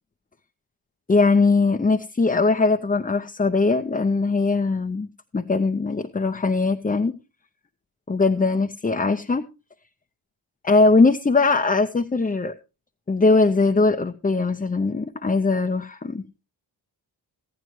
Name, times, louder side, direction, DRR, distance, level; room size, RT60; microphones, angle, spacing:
voice 1, 1.1-7.1 8.1-9.5 10.6-12.5 13.1-16.4, left 3 dB, 15° left, 4 dB, 0.6 m, -20 dB
14.0 x 11.0 x 3.1 m, 0.29 s
supercardioid pair, 45°, 48 cm